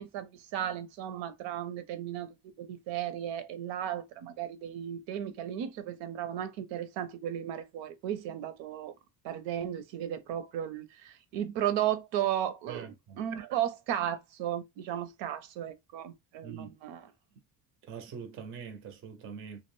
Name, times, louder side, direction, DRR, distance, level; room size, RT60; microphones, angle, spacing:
voice 1, 0.0-8.9 9.2-17.1, right 10 dB, 75° right, 0.6 m, -35 dB
voice 2, 12.7-13.2 16.4-16.7 17.8-19.6, right 6 dB, 30° right, 0.4 m, -43 dB
2.4 x 2.1 x 3.0 m
cardioid pair, 170°, 45 cm